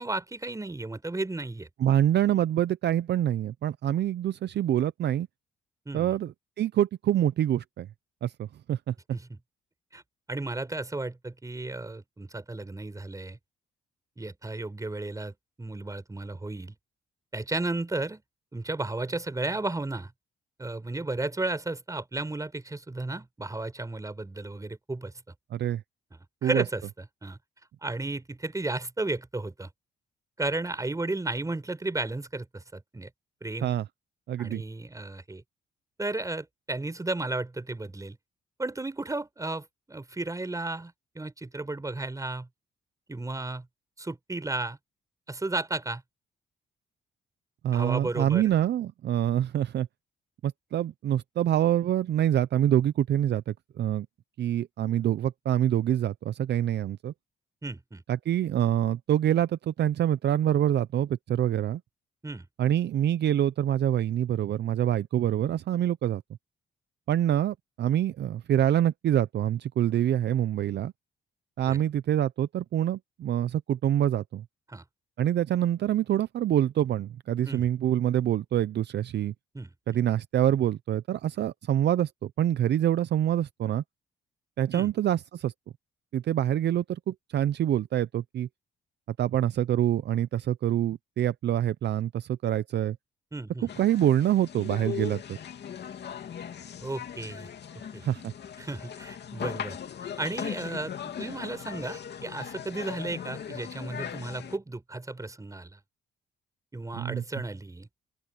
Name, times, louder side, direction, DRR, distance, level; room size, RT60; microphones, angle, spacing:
voice 1, 0.0-1.7 5.9-6.1 9.1-9.4 9.9-10.0 10.3-13.4 14.2-16.7 17.3-18.2 18.5-20.1 20.6-25.1 26.4-26.8 27.2-27.4 27.8-29.7 30.4-33.1 33.4-33.7 34.4-35.4 36.0-38.2 38.6-42.5 43.1-43.7 44.0-44.8 45.3-46.0 47.7-48.4 57.6-58.0 62.2-62.5 71.7-71.8 74.7-74.8 77.4-77.7 79.5-79.7 84.7-84.9 93.3-93.7 96.8-97.5 97.9-98.0 98.6-99.8 100.2-105.8 106.7-107.9, right 2 dB, 15° right, 4.5 m, -34 dB
voice 2, 1.8-5.3 5.9-7.9 8.2-8.9 25.5-25.8 26.4-26.6 33.6-33.9 34.3-34.6 47.6-49.9 50.4-54.1 54.4-57.1 58.1-61.8 62.6-66.2 67.1-70.9 71.6-74.4 75.2-79.3 79.9-83.8 84.6-85.5 86.1-88.5 89.2-93.0 93.8-95.4 98.0-98.3 106.9-107.2, right 11 dB, 60° right, 0.6 m, -26 dB
sound 1, 93.7-104.6, left 8 dB, 60° left, 2.7 m, -39 dB
open air
cardioid pair, 90°, 20 cm